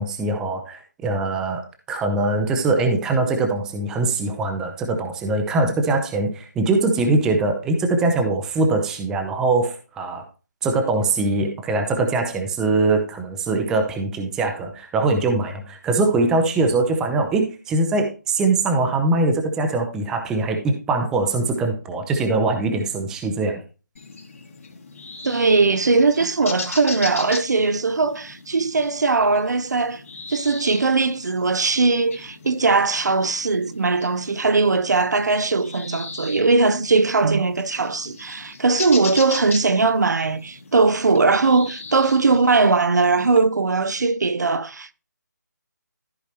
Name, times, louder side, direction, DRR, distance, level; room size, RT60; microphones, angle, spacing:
voice 1, 0.0-10.2 10.6-23.6, right 3 dB, 5° right, 0.6 m, -22 dB
sound 1, 24.0-43.4, left 4 dB, 50° left, 2.8 m, -38 dB
voice 2, 25.2-30.0 30.3-44.9, right 3 dB, 65° right, 0.7 m, -20 dB
14.0 x 4.6 x 3.0 m
figure-of-eight pair, 160°, 10 cm